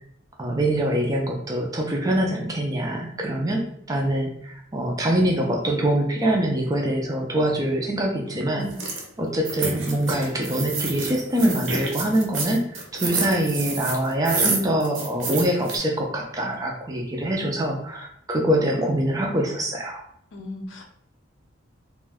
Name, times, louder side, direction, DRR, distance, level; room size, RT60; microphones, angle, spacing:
voice 1, 0.4-8.7 9.2-20.0, right 1 dB, 15° right, 0 dB, 0.4 m, -24 dB
voice 2, 8.3-8.8 20.3-20.8, left 1 dB, 60° left, 3 dB, 0.5 m, -36 dB
sound 1, 8.7-9.0 9.4-15.8, right 3 dB, 70° right, 0.7 m, -28 dB
2.5 x 2.2 x 3.4 m, 0.69 s
head